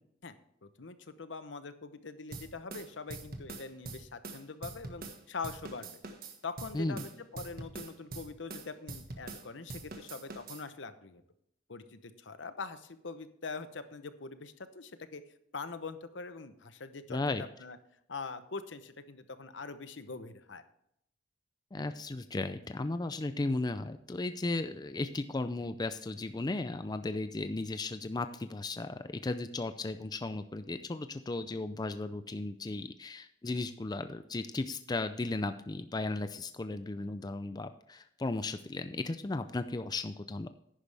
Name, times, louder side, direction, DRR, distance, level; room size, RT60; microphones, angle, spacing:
voice 1, 0.6-6.0 6.4-11.2 11.7-15.2 15.5-17.8 18.1-20.6, left 4 dB, 70° left, 11 dB, 0.9 m, -43 dB
sound 1, 2.3-5.2 5.4-9.4 9.7-10.6, right 3 dB, 50° right, 1.5 m, -44 dB
voice 2, 17.1-17.4 21.7-40.5, left 2 dB, 20° left, 10 dB, 0.4 m, -35 dB
11.0 x 10.0 x 3.4 m, 0.75 s
head